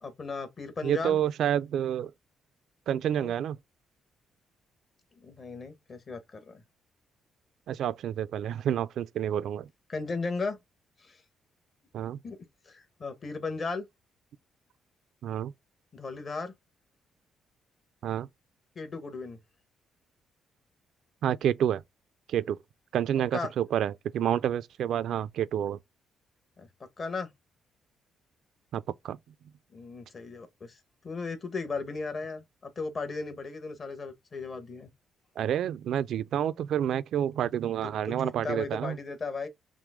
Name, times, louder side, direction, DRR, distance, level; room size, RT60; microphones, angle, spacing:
voice 1, 0.0-1.2 3.1-3.3 5.2-6.6 9.9-10.6 11.0-11.2 12.2-12.4 12.7-13.8 15.9-16.5 18.7-19.4 23.3-23.5 26.6-26.7 27.0-27.3 29.7-30.8 31.0-34.9 37.8-39.5, left 4 dB, 40° left, 1.2 m, -36 dB
voice 2, 0.8-2.1 2.9-3.6 7.7-9.7 11.9-12.2 15.2-15.5 18.0-18.3 21.2-21.8 22.3-22.6 22.9-25.8 28.7-29.2 35.4-39.0, right 10 dB, 70° right, 0.3 m, -29 dB
5.9 x 2.1 x 3.6 m
cardioid pair, 90°, 0 cm